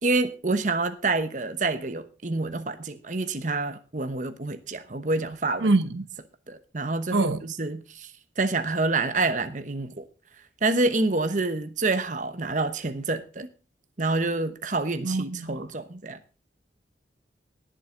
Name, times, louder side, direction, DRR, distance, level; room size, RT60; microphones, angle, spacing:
voice 1, 0.0-5.7 6.5-8.1 8.4-10.0 10.6-13.5 14.0-16.2, right 3 dB, 45° right, 1.0 m, -27 dB
voice 2, 5.6-6.0 7.1-7.4 15.0-15.7, right 2 dB, 80° right, 0.9 m, -24 dB
19.5 x 7.6 x 3.8 m
head